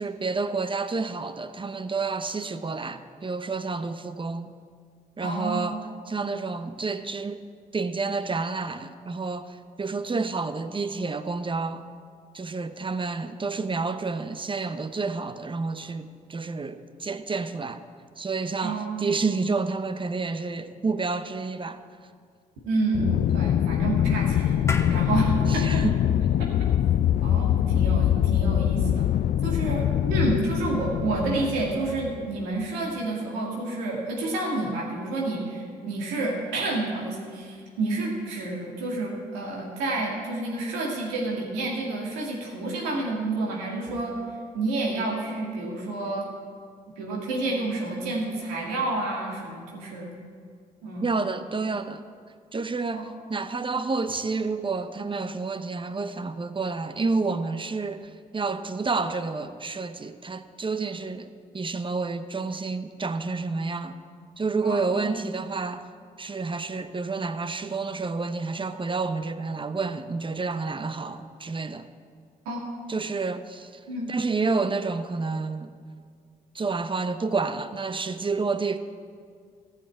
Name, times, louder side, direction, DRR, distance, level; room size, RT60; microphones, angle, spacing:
voice 1, 0.0-4.5 5.2-5.8 6.1-7.4 7.7-11.8 12.3-17.8 18.2-21.8 25.5-26.0 51.0-52.0 52.5-61.3 61.5-64.0 64.4-65.8 66.2-71.9 72.9-73.7 74.1-75.7 76.5-78.8, right 4 dB, 25° right, 0.8 m, -29 dB
voice 2, 5.2-5.9 18.6-19.1 22.6-25.8 27.2-29.1 29.4-44.2 44.5-46.3 47.0-50.1 50.8-51.2 52.9-53.1 64.6-65.2 72.5-72.7 73.9-74.2, right 2 dB, 85° right, 2.2 m, -29 dB
Aircraft, 22.9-32.4, left 10 dB, 50° left, 0.4 m, -23 dB
sound 1, 24.7-29.3, left 2 dB, 15° left, 1.3 m, -37 dB
14.5 x 5.7 x 8.5 m
hypercardioid pair, 45°, 19 cm